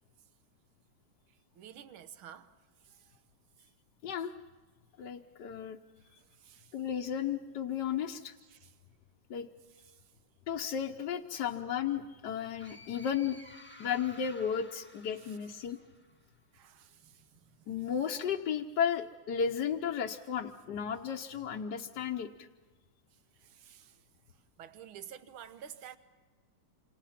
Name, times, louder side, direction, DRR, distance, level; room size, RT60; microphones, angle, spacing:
voice 1, 1.3-2.5 2.8-3.2 3.6-3.7 5.0-5.2 6.0-6.8 8.4-8.8 9.7-10.1 11.3-11.4 15.1-15.4 15.8-15.9 16.5-17.9 23.1-26.0, right 9 dB, 75° right, 1.9 m, -53 dB
voice 2, 5.0-5.8 6.7-8.3 9.3-9.5 10.5-13.4 13.8-15.8 17.7-22.5, left 8 dB, 60° left, 1.3 m, -34 dB
sound 1, 12.6-16.2, left 2 dB, 5° left, 1.1 m, -54 dB
28.0 x 27.5 x 5.8 m
omnidirectional pair, 2.4 m